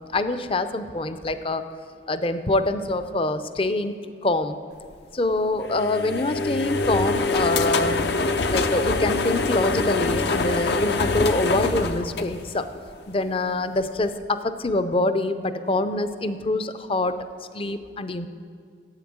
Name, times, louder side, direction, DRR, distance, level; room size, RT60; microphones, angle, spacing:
voice 1, 0.1-1.6 2.1-4.0 4.2-4.6 5.1-8.0 8.5-12.7 13.1-17.1 17.5-18.3, left 2 dB, 30° left, 11 dB, 0.5 m, -25 dB
sound 1, 5.6-12.9, left 3 dB, 70° left, 0.7 m, -24 dB
9.7 x 7.9 x 8.6 m, 2.2 s
head